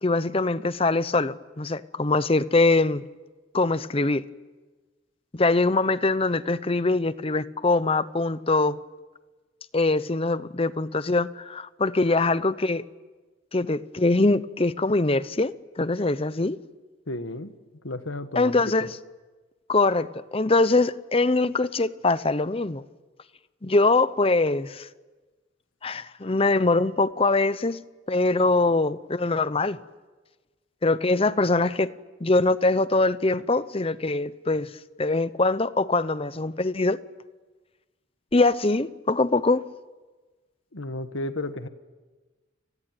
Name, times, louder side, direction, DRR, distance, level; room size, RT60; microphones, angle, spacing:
voice 1, 0.0-3.1 3.5-4.2 5.3-8.8 9.7-12.8 13.5-16.6 18.4-18.9 19.7-20.1 20.3-22.8 23.6-24.9 25.8-27.8 28.1-29.8 30.8-31.9 32.2-34.7 35.0-37.0 38.3-39.6, left 2 dB, 30° left, 15 dB, 0.8 m, -23 dB
voice 2, 17.1-17.5 17.8-18.6 40.7-41.7, left 2 dB, 80° left, 10 dB, 1.6 m, -33 dB
29.0 x 20.0 x 9.3 m, 1.3 s
head